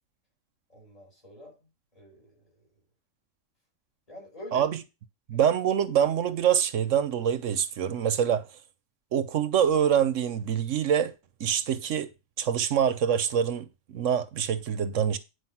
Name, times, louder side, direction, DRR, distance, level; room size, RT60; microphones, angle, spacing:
voice 1, 0.7-2.7 4.1-4.7 5.3-5.4, equal, 30° left, 7.1 m, -47 dB
voice 2, 5.3-8.4 9.1-11.1 11.4-12.1 12.4-15.2, right 8 dB, 80° right, 1.2 m, -25 dB
9.6 x 5.1 x 5.8 m
omnidirectional pair, 1.3 m